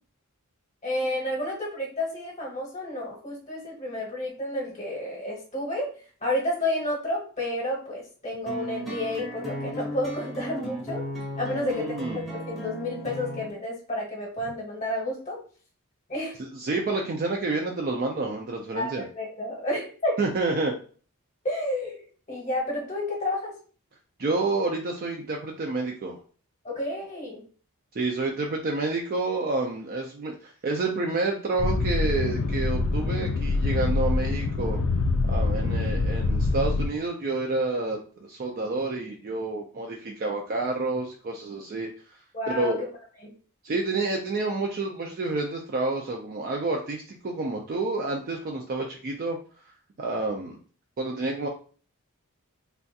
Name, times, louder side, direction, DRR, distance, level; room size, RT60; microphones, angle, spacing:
voice 1, 0.8-5.9 6.2-11.0 11.4-11.9 12.1-15.4 16.1-16.4 18.7-20.2 21.4-22.0 22.3-23.5 26.6-27.4 35.6-35.7 42.3-42.7 43.2-43.3, left 1 dB, 30° left, -2 dB, 0.9 m, -30 dB
sound 1, 8.5-13.5, equal, ahead, 0.7 m, -35 dB
voice 2, 11.5-12.2 16.4-19.1 20.2-20.8 24.2-26.2 27.9-34.8 35.3-42.2 42.5-42.8 43.6-49.4 50.0-50.6 51.0-51.5, right 3 dB, 40° right, 0 dB, 0.4 m, -29 dB
sound 2, 31.6-36.9, left 3 dB, 60° left, 0.4 m, -25 dB
3.3 x 2.3 x 2.6 m, 0.40 s
head